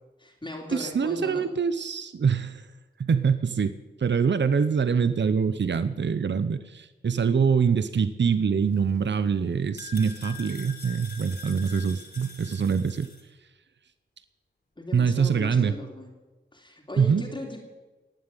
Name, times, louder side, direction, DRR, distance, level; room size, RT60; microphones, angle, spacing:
voice 1, 0.2-1.5 14.8-16.1 16.5-17.6, left 1 dB, 25° left, 0 dB, 3.1 m, -37 dB
voice 2, 0.7-2.7 3.0-13.1 14.9-15.7 17.0-17.2, right 6 dB, 65° right, 13 dB, 0.8 m, -24 dB
sound 1, 8.6-13.2, left 4 dB, 55° left, 3.3 m, -45 dB
18.5 x 7.7 x 9.1 m, 1.2 s
wide cardioid pair, 60°, 20 cm